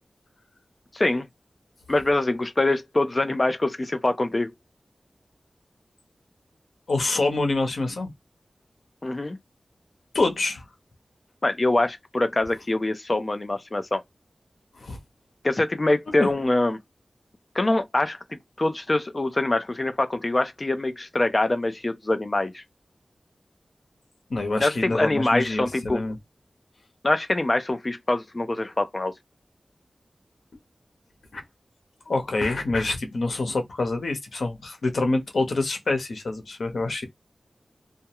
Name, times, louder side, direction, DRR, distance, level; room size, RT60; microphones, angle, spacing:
voice 1, 0.9-1.3 1.9-4.5 9.0-9.4 11.4-14.0 15.4-16.8 17.5-18.2 18.6-22.6 24.6-26.0 27.0-29.1, left 2 dB, 35° left, 0.5 m, -24 dB
voice 2, 6.9-8.1 10.1-10.7 14.8-15.0 16.2-16.3 24.3-26.2 31.3-31.4 32.1-37.1, left 2 dB, 85° left, 0.8 m, -26 dB
2.3 x 2.1 x 2.8 m
wide cardioid pair, 75°, 0 cm